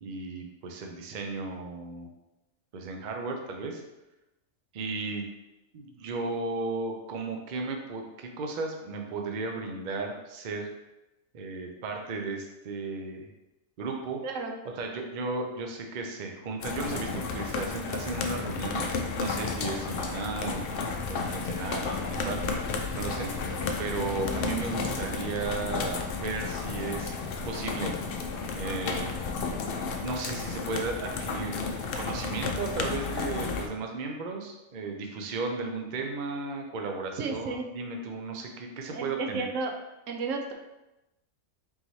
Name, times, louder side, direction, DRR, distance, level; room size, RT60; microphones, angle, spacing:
voice 1, 0.0-2.1 2.7-3.8 4.7-5.2 5.7-10.7 11.3-13.3 13.8-14.2 14.7-20.8 21.1-22.4 22.9-23.3 23.8-27.1 27.5-27.9 28.5-29.1 30.0-39.5, right 3 dB, 55° right, 2 dB, 0.5 m, -35 dB
voice 2, 14.2-14.6 22.2-22.7 37.2-37.6 38.9-39.7 40.1-40.5, right 3 dB, 75° right, 3 dB, 0.9 m, -33 dB
sound 1, 16.6-33.7, left 4 dB, 65° left, 0.6 m, -32 dB
4.0 x 3.7 x 3.1 m, 0.97 s
omnidirectional pair, 1.4 m